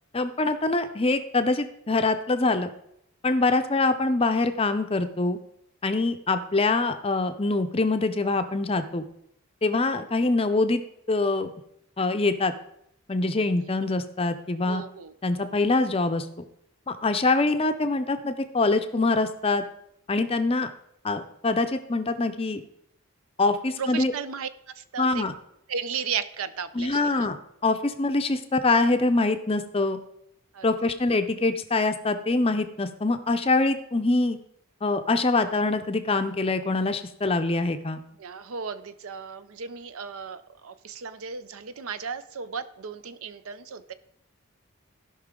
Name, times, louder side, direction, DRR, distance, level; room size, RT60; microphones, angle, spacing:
voice 1, 0.1-2.7 3.2-5.4 5.8-9.0 9.6-10.8 11.1-11.5 12.0-12.5 13.1-14.8 15.2-16.3 16.9-19.6 20.1-20.7 21.0-22.6 23.4-24.1 25.0-25.3 26.7-30.0 30.6-34.4 34.8-38.0, left 3 dB, 25° left, 9 dB, 0.5 m, -24 dB
voice 2, 14.7-15.1 23.8-24.5 24.7-25.2 25.7-27.3 30.5-30.7 38.2-43.9, right 6 dB, 70° right, 13 dB, 0.5 m, -35 dB
16.0 x 5.6 x 3.7 m, 0.76 s
head